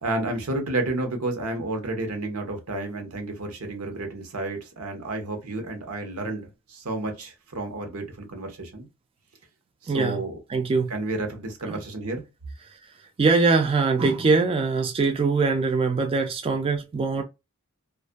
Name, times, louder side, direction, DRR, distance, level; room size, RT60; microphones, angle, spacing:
voice 1, 0.0-8.9 9.8-10.4 10.9-12.2, right 2 dB, 85° right, 0.9 m, -31 dB
voice 2, 9.9-10.2 10.5-10.9 11.6-11.8 13.2-17.2, right 4 dB, 25° right, 0.3 m, -22 dB
2.5 x 2.4 x 2.2 m
head